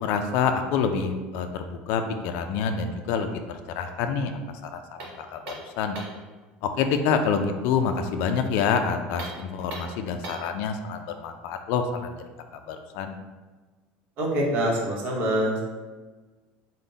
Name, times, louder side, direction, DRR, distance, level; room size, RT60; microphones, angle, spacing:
voice 1, 0.0-6.0 6.6-12.2 12.5-13.2, left 6 dB, 60° left, 6 dB, 0.3 m, -27 dB
sound 1, 5.0-6.3 9.1-10.6, right 2 dB, 75° right, 1.0 m, -39 dB
voice 2, 14.2-15.6, right 1 dB, 45° right, -2 dB, 0.9 m, -25 dB
3.8 x 2.1 x 3.8 m, 1.3 s
cardioid pair, 175°, 4 cm